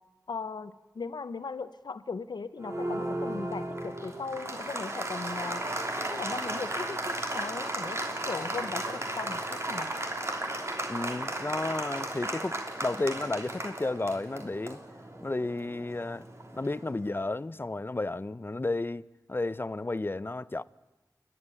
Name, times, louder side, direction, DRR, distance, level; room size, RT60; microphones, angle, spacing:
voice 1, 0.3-5.7 6.0-9.9, left 4 dB, 85° left, 0.8 m, -38 dB
Applause, 2.6-17.0, right 1 dB, 40° right, 3.2 m, -35 dB
voice 2, 10.9-14.8 15.2-16.3 16.5-20.6, left 2 dB, 30° left, 0.6 m, -32 dB
29.5 x 11.0 x 9.8 m
wide cardioid pair, 75°, 7 cm